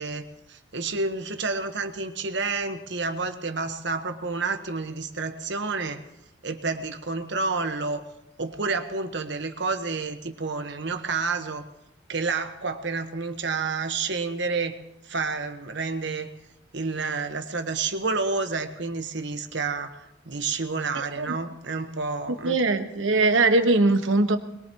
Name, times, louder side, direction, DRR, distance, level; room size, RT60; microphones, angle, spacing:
voice 1, 0.0-6.0 6.4-8.0 8.4-11.6 12.1-14.8 15.0-16.3 16.7-22.6, right 4 dB, 65° right, 7 dB, 1.3 m, -29 dB
voice 2, 20.9-21.3 22.4-24.4, right 2 dB, 90° right, 7 dB, 1.4 m, -21 dB
21.5 x 21.5 x 3.0 m, 0.83 s
head